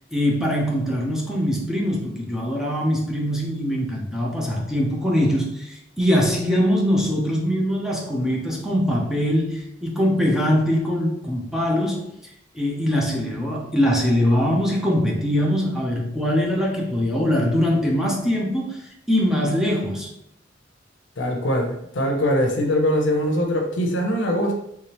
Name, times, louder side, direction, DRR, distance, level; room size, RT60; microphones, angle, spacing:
voice 1, 0.1-12.1 12.5-18.8 19.1-20.1, equal, 5° right, -3 dB, 0.6 m, -22 dB
voice 2, 21.2-24.6, equal, 70° left, 3 dB, 0.7 m, -22 dB
3.4 x 3.3 x 2.9 m, 0.77 s
head